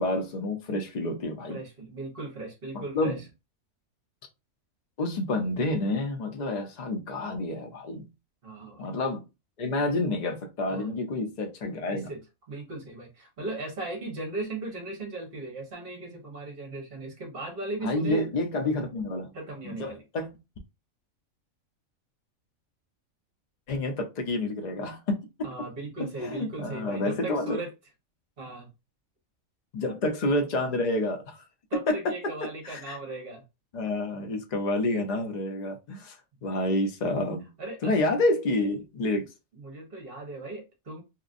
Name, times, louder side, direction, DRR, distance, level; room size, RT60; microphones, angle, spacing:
voice 1, 0.0-1.6 2.7-3.2 5.0-8.1 8.8-9.3 9.6-12.1 17.8-19.3 19.6-20.3 23.7-25.3 26.0-27.6 29.7-31.5 31.9-33.0 33.7-36.2 36.4-37.5 37.8-39.3, left 2 dB, 50° left, 0.5 m, -29 dB
voice 2, 1.5-3.2 8.4-8.8 10.7-10.9 11.9-12.2 12.5-18.3 19.3-20.0 25.4-27.7 28.4-28.7 31.7-33.4 37.6-38.0 39.5-41.0, right 2 dB, 45° right, 1.1 m, -37 dB
2.8 x 2.5 x 2.5 m
omnidirectional pair, 1.4 m